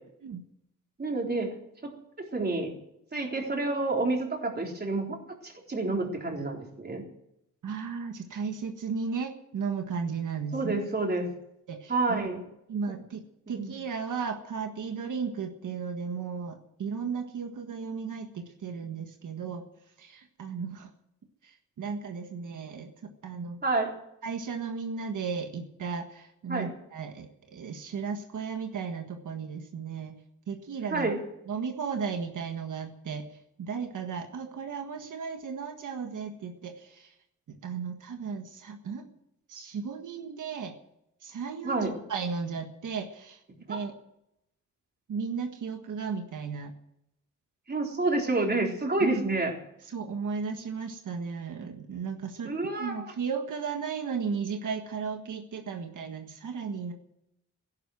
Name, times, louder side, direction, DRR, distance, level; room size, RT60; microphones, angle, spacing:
voice 1, 1.0-1.5 1.8-1.9 2.3-2.7 3.1-5.2 5.4-7.0 10.5-11.3 11.9-12.4 12.9-13.0 13.6-13.8 23.6-23.9 26.5-26.7 30.9-31.2 41.6-41.9 43.7-43.8 47.7-49.5 52.4-53.1, right 2 dB, 35° right, 1 dB, 3.9 m, -29 dB
voice 2, 7.6-10.7 11.7-12.3 12.7-13.2 13.5-19.6 20.0-20.9 21.4-22.9 23.2-23.6 24.2-30.2 30.5-31.1 31.5-33.2 33.6-37.1 37.5-39.1 39.5-40.8 41.2-43.4 43.7-44.0 45.1-46.7 49.0-49.3 49.9-52.5 52.8-56.9, right 5 dB, 90° right, 5 dB, 1.6 m, -35 dB
15.5 x 11.5 x 7.7 m, 0.81 s
wide cardioid pair, 115°, 30 cm